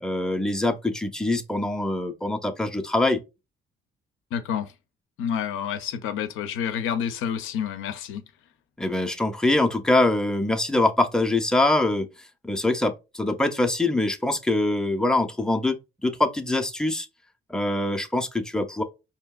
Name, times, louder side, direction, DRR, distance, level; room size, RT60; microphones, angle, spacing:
voice 1, 0.0-3.2 8.8-12.1 12.4-17.1 17.5-18.8, left 2 dB, 5° left, 0.5 m, -24 dB
voice 2, 4.3-4.7 5.2-8.2, left 8 dB, 85° left, 0.5 m, -29 dB
5.0 x 2.8 x 2.3 m
cardioid pair, 90°, 20 cm